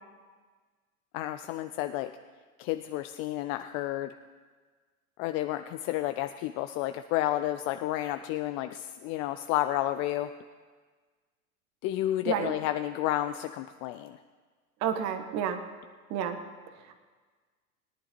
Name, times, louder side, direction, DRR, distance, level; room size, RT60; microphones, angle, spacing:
voice 1, 1.1-2.1 2.6-4.2 5.2-10.3 11.8-14.2, left 14 dB, 30° left, 10 dB, 0.4 m, -31 dB
voice 2, 14.8-15.6 16.1-16.4, right 8 dB, 40° right, 7 dB, 1.1 m, -30 dB
22.0 x 11.0 x 3.0 m, 1.5 s
figure-of-eight pair, 90°, 44 cm